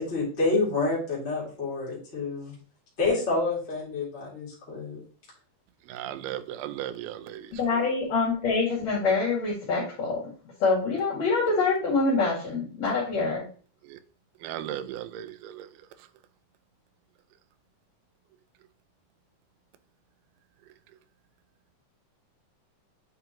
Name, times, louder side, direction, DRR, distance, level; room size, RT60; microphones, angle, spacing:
voice 1, 0.0-2.5 3.0-5.0, left 3 dB, 20° left, 2.4 m, -28 dB
voice 2, 5.9-7.5 13.8-14.0 14.4-15.7, right 11 dB, 85° right, 2.1 m, -36 dB
voice 3, 7.5-10.2 10.6-13.4, left 4 dB, 55° left, 3.1 m, -25 dB
8.4 x 4.3 x 2.9 m
omnidirectional pair, 3.7 m